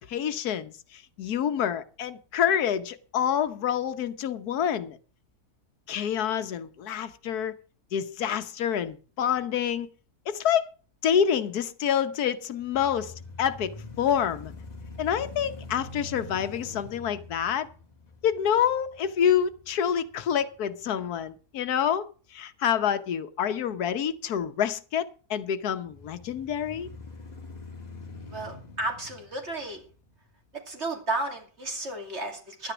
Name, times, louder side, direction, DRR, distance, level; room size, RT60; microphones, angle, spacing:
voice 1, 0.1-5.0 5.9-7.5 7.9-9.9 10.3-10.7 11.0-14.5 15.0-17.7 18.2-26.9, left 8 dB, 80° left, 1.4 m, -27 dB
sound 1, 12.6-20.7 21.2-21.3 25.8-30.3, left 3 dB, 30° left, 1.5 m, -44 dB
voice 2, 28.3-29.8 30.7-32.7, right 2 dB, 45° right, 2.9 m, -33 dB
11.5 x 9.9 x 6.1 m
omnidirectional pair, 1.6 m